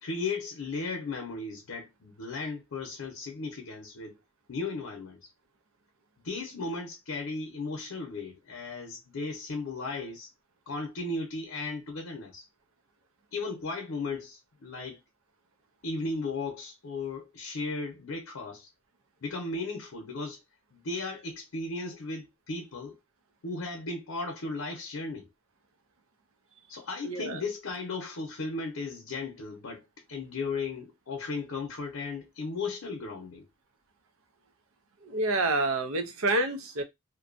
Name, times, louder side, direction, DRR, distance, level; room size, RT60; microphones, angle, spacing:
voice 1, 0.0-4.2 4.5-5.3 6.2-10.3 10.7-12.5 13.3-15.0 15.8-18.7 19.2-20.4 20.7-23.0 23.4-25.3 26.7-29.8 30.1-33.5, left 3 dB, 75° left, 0.7 m, -36 dB
voice 2, 27.0-27.4 35.0-36.8, right 2 dB, 80° right, 0.6 m, -28 dB
2.6 x 2.2 x 2.5 m
head